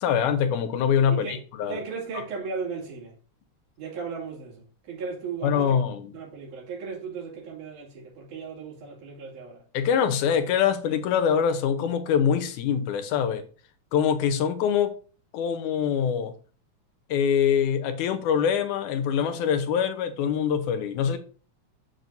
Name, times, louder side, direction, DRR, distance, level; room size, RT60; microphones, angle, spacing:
voice 1, 0.0-1.8 5.4-6.1 9.7-13.4 13.9-14.9 15.3-16.3 17.1-21.2, left 8 dB, 90° left, 2.3 m, -24 dB
voice 2, 1.1-1.4 1.7-3.1 3.8-5.8 6.1-9.6, right 5 dB, 85° right, 3.9 m, -36 dB
7.6 x 7.0 x 2.6 m
omnidirectional pair, 3.4 m